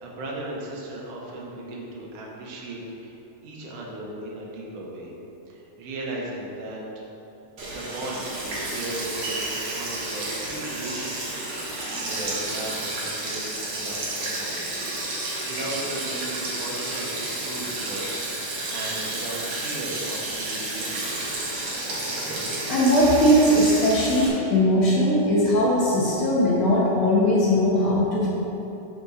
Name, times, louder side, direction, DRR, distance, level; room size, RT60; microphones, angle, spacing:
voice 1, 0.0-5.1 5.5-7.0 7.7-14.9 15.4-18.1 18.4-21.5, right 2 dB, 80° right, -3 dB, 2.6 m, -37 dB
Sink (filling or washing), 7.6-24.3, right 2 dB, 60° right, 2.3 m, -31 dB
voice 2, 22.7-28.3, equal, 70° left, -6 dB, 1.2 m, -19 dB
5.5 x 5.1 x 6.2 m, 3.0 s
omnidirectional pair, 3.6 m